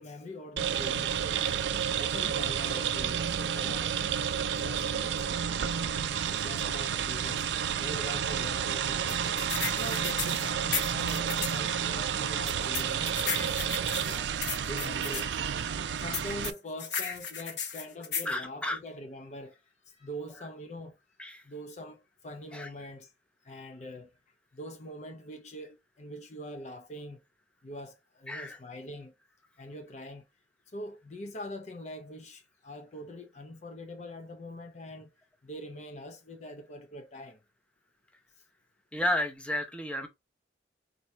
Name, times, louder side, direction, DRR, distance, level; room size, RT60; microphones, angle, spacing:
voice 1, 0.0-1.5 2.0-3.9 4.6-5.9 6.3-7.5 7.8-9.4 9.7-14.3 14.7-15.3 15.8-19.6 19.9-21.0 21.4-23.1 23.4-24.1 24.5-27.2 27.6-29.1 29.6-30.2 30.7-35.1 35.4-37.4, left 1 dB, 40° left, 0.5 m, -43 dB
sound 1, 0.6-16.5, right 8 dB, 75° right, 0.4 m, -30 dB
sound 2, 9.1-11.6 12.5-15.2 16.1-18.3, left 6 dB, 75° left, 1.0 m, -35 dB
voice 2, 18.3-18.8 21.2-21.4 22.5-22.7 28.3-28.6 38.9-40.1, left 1 dB, 5° left, 0.7 m, -32 dB
4.2 x 2.6 x 4.4 m
head